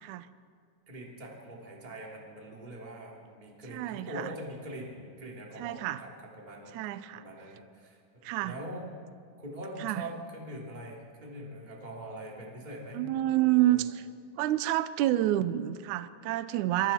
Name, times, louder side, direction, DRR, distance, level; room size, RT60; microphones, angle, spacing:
voice 1, 0.9-6.8 7.1-8.9 9.4-13.0 13.6-13.8, right 1 dB, 10° right, -3 dB, 3.0 m, -43 dB
voice 2, 3.7-4.3 5.6-6.0 6.7-7.2 8.2-8.6 9.8-10.0 12.9-14.1 14.4-16.9, right 14 dB, 80° right, 13 dB, 1.7 m, -28 dB
27.0 x 23.0 x 4.5 m, 2.1 s
omnidirectional pair, 4.3 m